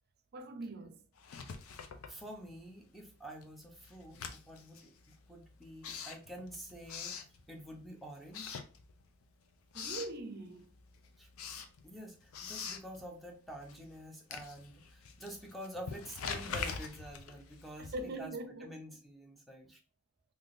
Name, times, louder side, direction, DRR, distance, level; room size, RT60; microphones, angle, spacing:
voice 1, 0.3-1.0 9.7-10.7 17.8-18.7, right 2 dB, 50° right, 0.5 m, -42 dB
Writing, 1.2-2.8 3.1-7.9 8.3-9.2 9.5-10.2 10.6-18.3, left 5 dB, 90° left, 0.5 m, -45 dB
voice 2, 2.1-7.2 7.5-8.5 11.2-11.3 11.8-19.8, equal, ahead, 0.6 m, -48 dB
3.5 x 2.7 x 2.5 m
head